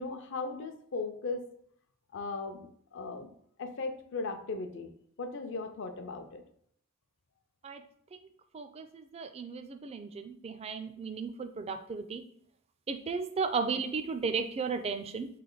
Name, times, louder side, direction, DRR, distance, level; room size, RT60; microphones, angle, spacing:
voice 1, 0.0-1.4 2.1-3.3 3.6-4.9 5.2-6.4, left 3 dB, 60° left, 6 dB, 0.6 m, -37 dB
voice 2, 8.5-12.2 12.9-15.3, right 5 dB, 30° right, 8 dB, 0.3 m, -35 dB
3.7 x 3.3 x 3.9 m, 0.65 s
head